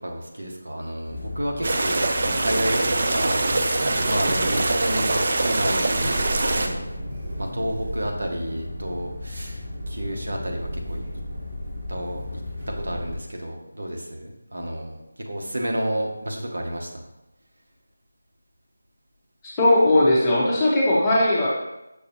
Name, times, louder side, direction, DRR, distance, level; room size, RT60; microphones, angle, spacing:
voice 1, 0.0-6.9 7.4-11.0 11.9-12.2 12.7-15.0 15.2-17.1, right 1 dB, 75° right, 1 dB, 0.9 m, -30 dB
sound 1, 1.0-13.2, left 1 dB, 30° right, 1.6 m, -33 dB
sound 2, 1.6-6.7, right 2 dB, 45° right, 0.4 m, -24 dB
voice 2, 19.4-21.5, left 1 dB, 15° left, -7 dB, 0.9 m, -18 dB
6.3 x 2.6 x 3.0 m, 0.92 s
figure-of-eight pair, 165°, 0 cm